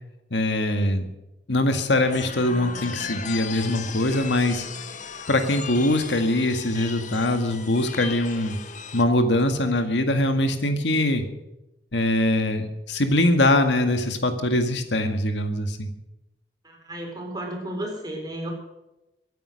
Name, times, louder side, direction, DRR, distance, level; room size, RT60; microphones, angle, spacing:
voice 1, 0.3-1.0 1.5-4.7 5.3-8.6 8.9-11.2 11.9-15.9, left 1 dB, 90° left, 7 dB, 1.8 m, -22 dB
sound 1, 2.1-9.0, left 5 dB, 45° left, 1.3 m, -37 dB
voice 2, 16.6-18.5, right 1 dB, 25° right, 0 dB, 4.3 m, -33 dB
23.0 x 9.2 x 6.4 m, 0.95 s
head